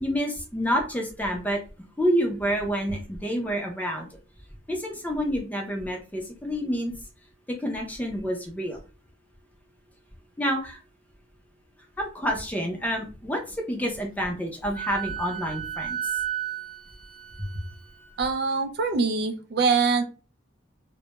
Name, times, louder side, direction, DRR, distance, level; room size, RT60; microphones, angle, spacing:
voice 1, 0.0-1.6 2.0-4.1 4.7-6.9 7.5-8.8 10.4-10.8 12.0-16.2 17.4-17.5, equal, 10° left, 1 dB, 0.5 m, -28 dB
Wind instrument woodwind instrument, 14.7-18.2, right 10 dB, 25° right, 0.9 m, -33 dB
voice 2, 18.2-20.0, right 4 dB, 55° right, 6 dB, 0.3 m, -24 dB
2.1 x 2.1 x 2.9 m, 0.33 s
head